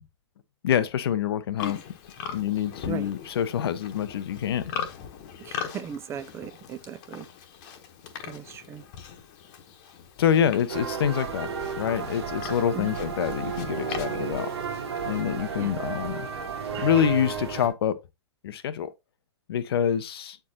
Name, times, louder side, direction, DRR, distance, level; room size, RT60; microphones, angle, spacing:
voice 1, 0.6-1.8 2.3-4.6 10.2-11.5 11.8-14.5 15.1-16.3 16.8-18.0 18.4-18.9 19.5-20.4, left 9 dB, 60° left, 0.7 m, -26 dB
Livestock farm animals working animals, 1.6-15.2, left 8 dB, 40° left, 1.1 m, -40 dB
voice 2, 5.4-7.3 8.3-8.8 12.7-12.9 15.6-15.7, right 8 dB, 20° right, 0.4 m, -37 dB
sound 1, 10.7-17.7, right 6 dB, 65° right, 1.5 m, -33 dB
8.2 x 4.5 x 2.9 m
figure-of-eight pair, 110°, 15 cm